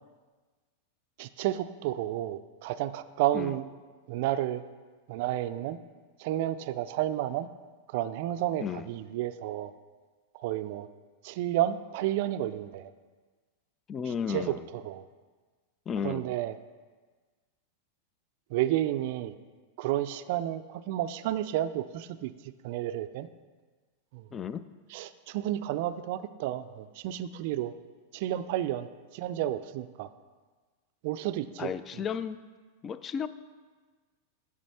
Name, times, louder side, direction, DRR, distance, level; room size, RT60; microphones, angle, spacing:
voice 1, 1.2-3.7 4.1-4.6 5.1-5.8 6.2-7.5 7.9-9.7 10.3-10.9 11.2-12.9 14.1-15.1 16.0-16.6 18.5-19.3 19.8-22.3 22.6-23.3 24.1-24.2 24.9-27.7 28.1-30.1 31.0-31.7, right 13 dB, 60° right, 12 dB, 0.3 m, -31 dB
voice 2, 13.9-14.6 15.9-16.3 24.3-24.6 31.6-32.4 32.8-33.3, left 7 dB, 25° left, 13 dB, 0.3 m, -33 dB
7.3 x 6.2 x 4.2 m, 1.4 s
hypercardioid pair, 115°, 0 cm